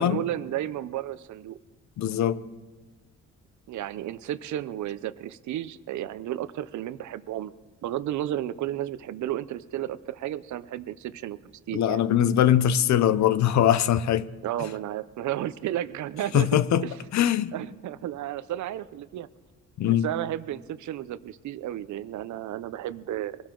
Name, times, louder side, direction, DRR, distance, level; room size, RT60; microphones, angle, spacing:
voice 1, 0.0-1.6 3.7-7.5 7.8-11.4 11.7-12.0 14.4-16.5 16.8-16.9 17.2-19.3 19.8-23.4, right 12 dB, 70° right, 0.7 m, -33 dB
voice 2, 2.0-2.4 11.7-14.3 16.3-17.5 19.8-20.1, left 10 dB, 65° left, 0.7 m, -22 dB
22.5 x 12.0 x 3.8 m
cardioid pair, 90°, 30 cm